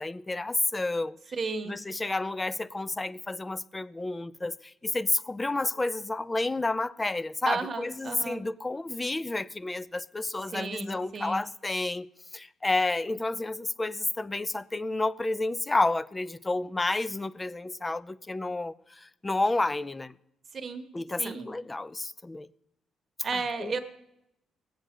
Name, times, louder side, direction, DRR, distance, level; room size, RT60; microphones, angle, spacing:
voice 1, 0.0-1.2 1.7-12.1 12.3-20.1 20.9-22.5 23.6-23.8, left 2 dB, 20° left, 0.5 m, -30 dB
voice 2, 1.3-1.8 7.5-8.4 10.5-11.4 20.5-20.9 21.2-21.5 23.2-23.8, right 4 dB, 45° right, 1.4 m, -33 dB
18.5 x 7.8 x 6.7 m
cardioid pair, 90°, 0 cm